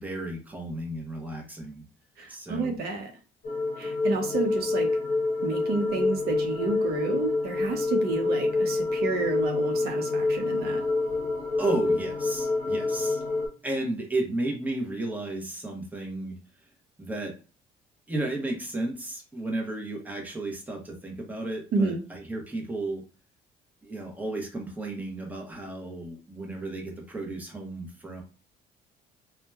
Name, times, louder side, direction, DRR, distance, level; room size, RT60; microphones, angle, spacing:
voice 1, 0.0-1.9 2.3-2.7 11.6-13.2 13.6-16.4 17.0-17.3 18.1-23.0 23.8-28.2, right 2 dB, 10° right, 1 dB, 0.8 m, -33 dB
voice 2, 2.2-3.1 3.8-4.9 5.4-10.8 21.7-22.0, right 3 dB, 65° right, 3 dB, 0.7 m, -30 dB
sound 1, 3.4-13.5, left 3 dB, 50° left, 0.8 m, -27 dB
2.8 x 2.1 x 2.3 m, 0.34 s
cardioid pair, 110°, 17 cm